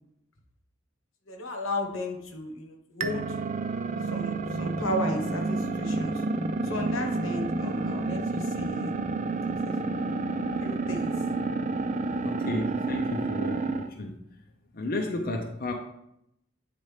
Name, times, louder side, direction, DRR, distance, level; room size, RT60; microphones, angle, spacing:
voice 1, 1.3-3.4 4.1-6.2 6.6-9.0 9.6-9.8 10.6-11.1, left 1 dB, 85° left, 3 dB, 1.1 m, -34 dB
sound 1, 3.0-13.9, right 3 dB, 40° right, 0.4 m, -30 dB
voice 2, 12.2-14.2 14.7-15.7, left 2 dB, 45° left, 3 dB, 0.6 m, -33 dB
8.9 x 4.2 x 3.2 m, 0.79 s
head